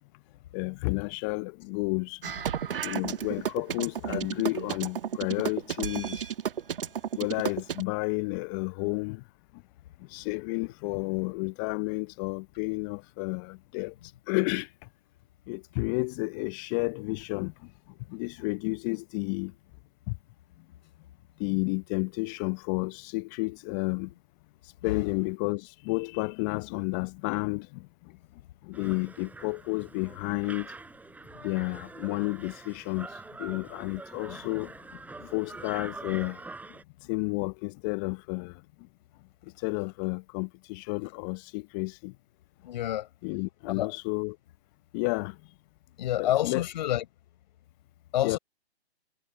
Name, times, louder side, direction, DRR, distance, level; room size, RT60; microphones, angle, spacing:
voice 1, 0.5-2.3 2.7-6.3 7.2-9.3 9.5-9.6 10.0-13.9 14.3-14.9 15.5-19.5 20.1-20.2 21.4-24.1 24.8-28.2 28.6-30.7 31.3-38.9 39.4-42.2 43.2-44.4 44.9-45.4 46.2-46.6 48.2-48.4, left 30 dB, 20° left, 0.7 m, -32 dB
sound 1, 2.2-7.8, right 8 dB, 55° right, 1.4 m, -32 dB
sound 2, 28.7-36.8, right 3 dB, 5° right, 6.5 m, -45 dB
voice 2, 42.6-43.1 43.7-43.9 46.0-47.0 48.1-48.4, left 12 dB, 45° left, 5.8 m, -28 dB
figure-of-eight pair, 130°, 32 cm